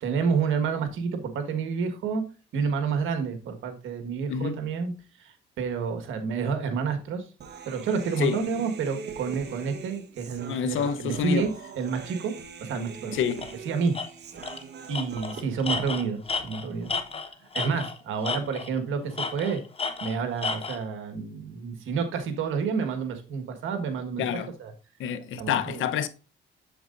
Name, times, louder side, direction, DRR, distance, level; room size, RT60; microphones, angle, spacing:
voice 1, 0.0-2.2 2.5-4.9 5.2-7.3 7.7-11.5 11.8-12.3 12.6-13.2 13.6-13.9 14.9-16.9 17.5-19.6 20.0-24.7 25.4-25.8, right 5 dB, 80° right, 1.6 m, -29 dB
voice 2, 4.3-4.6 8.2-8.4 10.5-11.5 13.1-13.5 24.2-24.5 25.0-26.1, left 7 dB, 80° left, 0.9 m, -28 dB
Human voice, 7.4-15.4, right 6 dB, 55° right, 1.2 m, -42 dB
Tools, 13.4-13.5 13.9-14.1 14.4-14.6 14.9-18.0 18.2-18.8 19.2-20.8, left 4 dB, 30° left, 1.1 m, -32 dB
7.8 x 7.5 x 2.6 m
cardioid pair, 90°, 20 cm